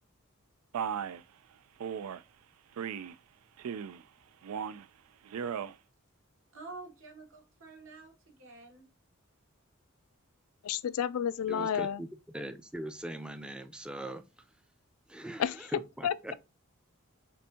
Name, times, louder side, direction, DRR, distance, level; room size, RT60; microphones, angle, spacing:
Male speech man speaking, 0.7-1.2 1.8-2.2 2.8-3.2 3.6-4.0 4.4-4.9 5.3-5.7, right 7 dB, 90° right, 0.4 m, -36 dB
voice 1, 6.5-8.9, right 3 dB, 65° right, 1.9 m, -48 dB
voice 2, 10.6-12.0 15.4-15.7 16.0-16.3, left 8 dB, 85° left, 0.4 m, -31 dB
voice 3, 11.5-12.1 12.3-14.2 15.1-15.4 15.7-16.3, right 1 dB, 5° right, 0.4 m, -40 dB
6.8 x 2.6 x 2.8 m
head